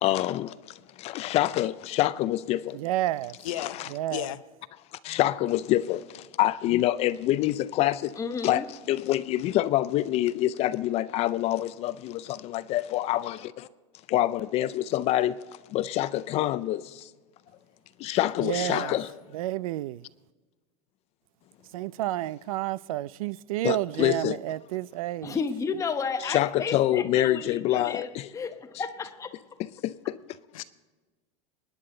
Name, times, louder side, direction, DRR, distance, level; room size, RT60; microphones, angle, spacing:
voice 1, 0.0-2.8 3.6-3.9 5.0-8.1 8.4-13.7 14.1-15.4 15.7-17.1 18.0-19.1 23.6-24.4 26.3-28.3 29.8-30.2, left 14 dB, 40° left, 0.4 m, -26 dB
voice 2, 2.7-3.4 3.9-4.3 18.4-19.0 19.3-20.1 21.7-25.4, right 15 dB, 85° right, 0.4 m, -30 dB
voice 3, 3.4-3.8 4.1-4.4 18.5-19.2 30.5-30.6, left 13 dB, 80° left, 0.8 m, -35 dB
voice 4, 8.2-8.7 25.2-29.3, left 5 dB, 20° left, 0.9 m, -32 dB
25.0 x 9.9 x 3.9 m
supercardioid pair, 135°, 17 cm